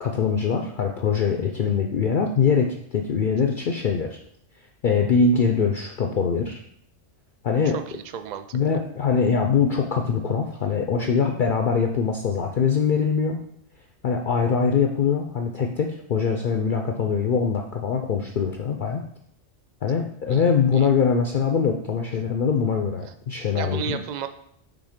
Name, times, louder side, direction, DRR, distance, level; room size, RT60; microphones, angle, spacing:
voice 1, 0.0-4.2 4.8-6.6 7.4-7.8 8.5-13.4 14.0-19.0 19.8-24.0, left 6 dB, 55° left, 3 dB, 0.6 m, -23 dB
voice 2, 7.7-8.6 19.8-20.4 20.7-20.9 23.3-24.3, right 8 dB, 65° right, 9 dB, 0.4 m, -34 dB
6.0 x 3.7 x 5.0 m, 0.68 s
omnidirectional pair, 1.3 m